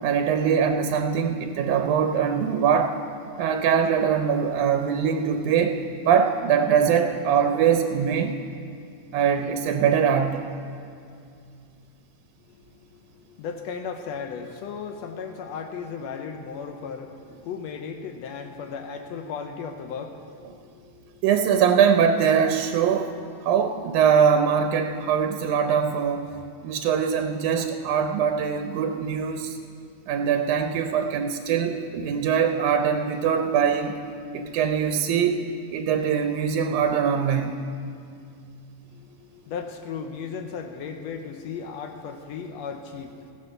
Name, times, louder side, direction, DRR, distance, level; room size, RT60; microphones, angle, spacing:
voice 1, 0.0-2.9 3.4-5.8 6.0-8.4 9.1-10.5 21.2-23.1 23.4-26.3 26.6-29.6 30.1-34.0 34.3-35.4 35.7-37.5, right 7 dB, 85° right, 6 dB, 2.1 m, -22 dB
voice 2, 12.5-21.2 38.9-43.3, left 6 dB, 75° left, 5 dB, 1.8 m, -36 dB
15.0 x 9.8 x 6.7 m, 2.4 s
omnidirectional pair, 3.4 m